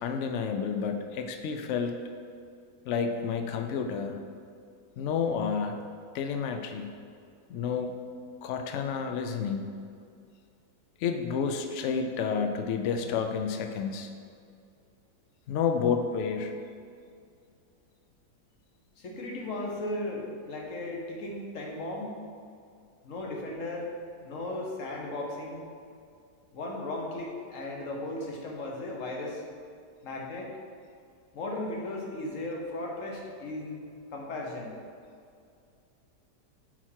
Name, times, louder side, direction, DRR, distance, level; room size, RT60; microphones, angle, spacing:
voice 1, 0.0-2.0 2.9-4.2 5.0-5.8 6.1-6.9 7.5-7.9 8.4-9.7 11.0-14.1 15.5-16.5, left 6 dB, 85° left, 5 dB, 0.6 m, -30 dB
voice 2, 19.0-22.2 23.0-23.9 24.2-25.6 26.5-29.4 30.0-30.5 31.3-33.8 34.1-34.8, left 2 dB, 50° left, -1 dB, 1.3 m, -36 dB
7.7 x 4.2 x 4.5 m, 2.3 s
omnidirectional pair, 1.8 m